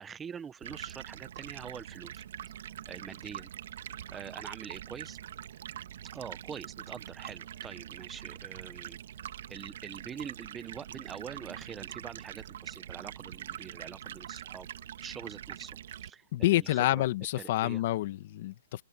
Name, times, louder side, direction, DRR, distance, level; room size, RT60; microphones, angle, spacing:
voice 1, 0.0-2.2 2.9-3.5 4.1-5.2 6.1-9.0 9.5-14.7 15.0-17.1 17.4-17.8, right 7 dB, 15° right, 0.9 m, -45 dB
Stream, 0.6-16.1, right 10 dB, 65° right, 1.6 m, -44 dB
voice 2, 16.3-18.8, left 15 dB, 50° left, 1.7 m, -28 dB
open air
hypercardioid pair, 150°, 0 cm